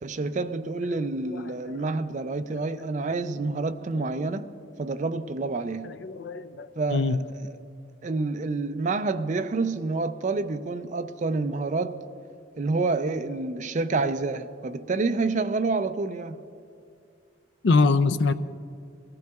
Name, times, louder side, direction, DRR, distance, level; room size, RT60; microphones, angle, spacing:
voice 1, 0.0-4.5 4.8-6.0 6.8-7.6 8.0-12.0 12.6-16.4, right 3 dB, 40° right, 0.4 m, -28 dB
voice 2, 5.8-7.2 17.6-18.3, left 3 dB, 65° left, 0.4 m, -24 dB
20.5 x 14.5 x 2.3 m
head